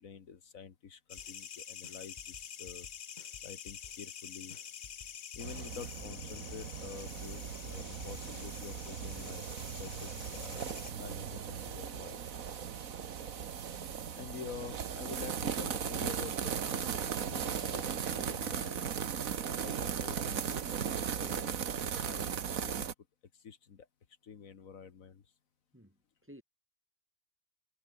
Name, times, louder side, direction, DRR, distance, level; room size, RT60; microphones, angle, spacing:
voice 1, 0.0-2.9 3.4-4.6 5.3-9.4 9.7-10.6 10.9-12.2 14.1-18.8 19.6-20.6 20.8-21.5 21.8-22.3 22.6-22.9 23.4-23.9 24.2-25.2, left 6 dB, 80° left, 1.9 m, -48 dB
sound 1, 1.1-10.9, left 8 dB, 50° left, 0.9 m, -47 dB
sound 2, 1.2-1.5 1.8-4.2 4.5-6.9 7.2-9.5 9.8-11.8, left 4 dB, 35° left, 1.6 m, -56 dB
sound 3, 5.4-22.9, right 8 dB, 80° right, 1.7 m, -37 dB
voice 2, 25.7-26.4, equal, 10° right, 3.7 m, -56 dB
omnidirectional pair, 1.4 m